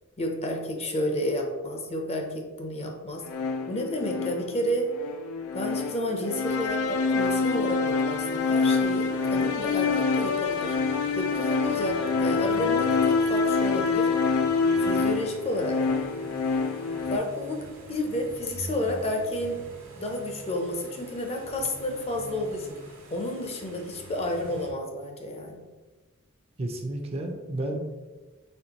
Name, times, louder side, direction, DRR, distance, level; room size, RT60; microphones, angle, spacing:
voice 1, 0.2-3.3 3.7-4.9 5.5-10.8 11.1-14.1 14.8-15.8 17.1-19.6 20.0-22.8 23.1-25.6, left 1 dB, 30° left, 3 dB, 0.5 m, -31 dB
sound 1, 3.3-17.2, left 4 dB, 90° left, 0.3 m, -26 dB
sound 2, 8.5-24.7, right 1 dB, 70° right, 1.3 m, -45 dB
voice 2, 26.6-27.8, right 1 dB, 30° right, 3 dB, 0.4 m, -31 dB
4.3 x 3.0 x 2.9 m, 1.2 s
head